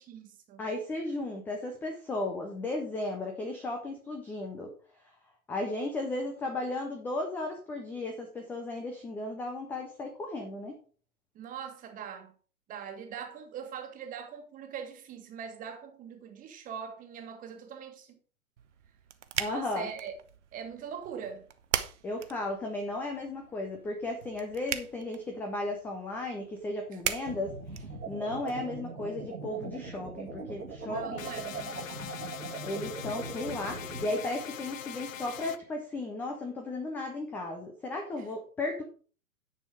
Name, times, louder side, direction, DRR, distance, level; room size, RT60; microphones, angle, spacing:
voice 1, 0.0-0.6 11.3-12.3 12.7-18.2 19.4-20.1 20.5-21.5 30.9-32.1, right 7 dB, 20° right, 1.6 m, -42 dB
voice 2, 0.6-4.7 5.5-10.7 19.4-19.9 22.0-31.3 32.6-38.8, left 2 dB, 5° left, 0.6 m, -35 dB
sound 1, 18.6-28.5, right 9 dB, 50° right, 1.1 m, -40 dB
sound 2, 27.3-34.1, right 3 dB, 75° right, 2.5 m, -40 dB
sound 3, 31.2-35.6, left 8 dB, 60° left, 0.9 m, -42 dB
10.0 x 6.2 x 5.0 m
figure-of-eight pair, 115°, 44 cm